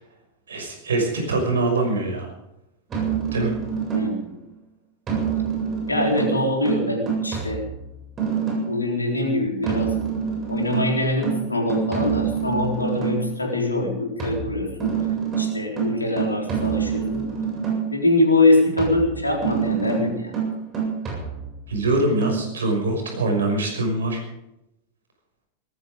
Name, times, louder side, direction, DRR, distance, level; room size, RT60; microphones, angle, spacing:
voice 1, 0.5-2.3 3.3-3.5 21.7-24.2, right 2 dB, 70° right, 4 dB, 6.0 m, -23 dB
sound 1, 2.9-4.3 5.1-8.9 9.6-13.3 14.2-18.0 18.8-21.7 22.2-22.4, right 7 dB, 25° right, 7.4 m, -26 dB
voice 2, 3.9-4.4 5.9-7.6 8.7-9.9 10.5-14.9 15.4-17.3 17.9-20.3, left 2 dB, 80° left, 1 dB, 4.1 m, -23 dB
19.5 x 14.5 x 5.1 m, 0.86 s
figure-of-eight pair, 90°, 0 cm